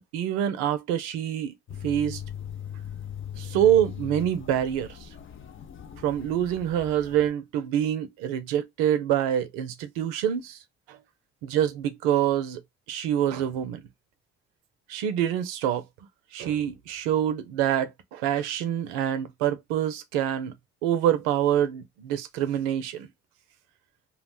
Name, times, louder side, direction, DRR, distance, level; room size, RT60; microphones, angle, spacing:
voice 1, 0.1-1.5 1.8-2.2 3.4-4.9 6.0-10.6 10.9-11.0 11.4-12.6 12.9-13.8 14.9-15.8 16.3-20.5 20.8-23.1, right 10 dB, 85° right, 0.5 m, -26 dB
sound 1, 1.7-7.3, left 9 dB, 45° left, 0.5 m, -40 dB
2.3 x 2.0 x 3.3 m
hypercardioid pair, 40°, 30 cm